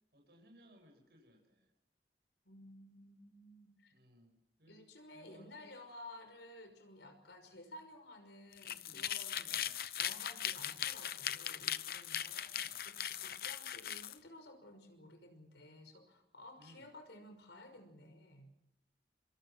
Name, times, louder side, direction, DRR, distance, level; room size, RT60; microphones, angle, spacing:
voice 1, 0.1-1.7 3.9-4.8 5.1-5.7 9.4-9.8 12.1-12.8 16.6-16.9, equal, 65° right, 2 dB, 7.8 m, -63 dB
voice 2, 2.4-3.9 4.7-9.6 10.0-12.5 12.8-18.5, left 1 dB, 85° left, 7 dB, 5.8 m, -55 dB
sound 1, 8.5-14.2, left 10 dB, 55° left, 0.8 m, -39 dB
26.5 x 26.0 x 6.2 m, 0.82 s
head